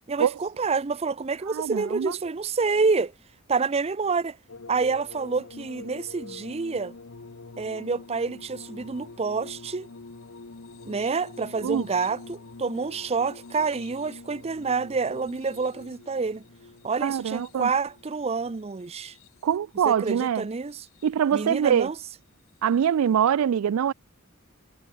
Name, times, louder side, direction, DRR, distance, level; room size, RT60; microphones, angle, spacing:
voice 1, 0.1-3.1 3.5-4.4 4.7-6.9 7.6-9.9 10.8-16.4 16.8-19.1 19.8-20.8 21.3-22.0, right 4 dB, 30° right, 0.5 m, -28 dB
voice 2, 1.5-2.2 11.6-11.9 17.0-17.7 19.4-20.4 21.0-21.9 22.6-23.9, right 8 dB, 85° right, 0.4 m, -24 dB
sound 1, 4.5-19.7 20.6-21.3 22.7-22.9, left 3 dB, 70° left, 1.0 m, -46 dB
head